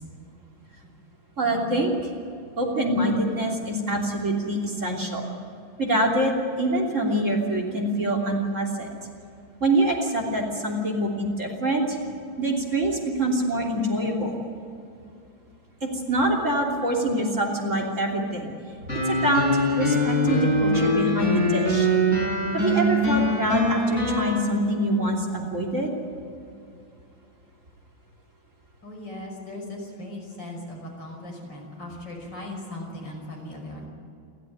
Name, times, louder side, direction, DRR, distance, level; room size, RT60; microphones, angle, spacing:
voice 1, 1.4-2.1 2.6-5.3 5.8-8.9 9.6-12.0 12.4-14.4 15.8-18.5 18.9-21.9 22.5-25.9, right 1 dB, 35° right, 2 dB, 3.5 m, -25 dB
sound 1, 18.9-24.4, equal, 35° left, 6.6 m, -23 dB
voice 2, 28.8-33.9, left 1 dB, 60° left, 0 dB, 6.5 m, -38 dB
29.0 x 13.0 x 9.5 m, 2.5 s
omnidirectional pair, 2.2 m